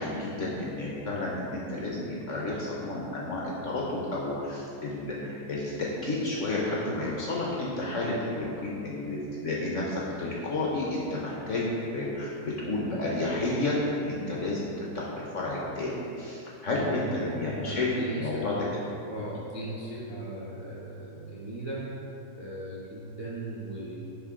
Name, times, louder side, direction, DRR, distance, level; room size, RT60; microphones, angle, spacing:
voice 1, 0.0-11.6 11.9-18.8, left 2 dB, 55° left, -4 dB, 0.9 m, -31 dB
voice 2, 16.7-17.1 17.6-18.6 19.1-21.9 22.3-24.0, right 1 dB, 45° right, -7 dB, 0.3 m, -38 dB
9.6 x 3.7 x 3.6 m, 2.7 s
omnidirectional pair, 2.1 m